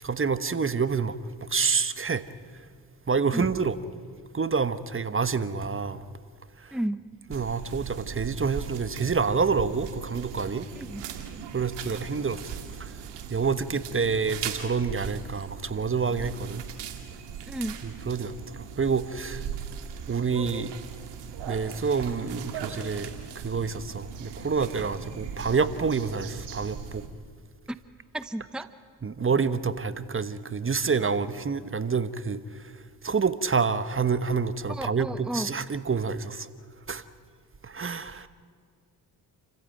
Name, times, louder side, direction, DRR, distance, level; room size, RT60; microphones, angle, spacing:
voice 1, 0.0-2.2 3.1-3.8 4.3-6.0 6.6-6.7 7.3-10.7 11.5-12.4 12.8-12.9 13.3-16.6 17.8-19.4 20.1-20.7 21.5-27.0 29.0-32.4 33.0-36.5 36.9-37.0 37.6-38.3, right 5 dB, 30° right, 1.2 m, -28 dB
voice 2, 6.7-7.0 10.8-11.0 17.5-17.8 28.1-28.7 34.7-35.5, right 1 dB, ahead, 1.0 m, -32 dB
sound 1, 7.3-27.1, right 8 dB, 80° right, 2.3 m, -39 dB
29.0 x 15.0 x 9.1 m
supercardioid pair, 60°, 42 cm